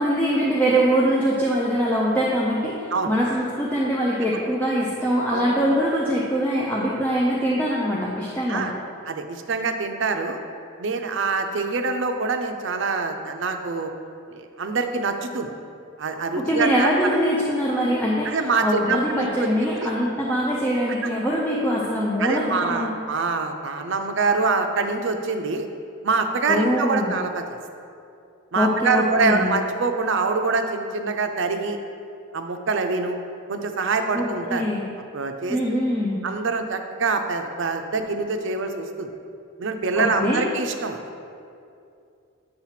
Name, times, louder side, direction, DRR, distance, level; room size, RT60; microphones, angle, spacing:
voice 1, 0.0-8.7 16.3-18.3 18.6-23.0 26.5-27.2 28.6-29.5 34.1-34.8 35.5-36.2 40.0-40.4, equal, 10° left, -6 dB, 0.5 m, -23 dB
voice 2, 9.1-10.4 10.8-13.9 14.3-15.5 16.0-16.9 18.2-19.9 21.0-21.1 22.2-25.6 26.0-27.4 28.5-31.8 32.3-33.2 33.5-34.6 35.1-35.6 36.2-39.1 39.6-41.0, right 4 dB, 60° right, 6 dB, 0.5 m, -25 dB
8.8 x 2.9 x 5.7 m, 2.5 s
head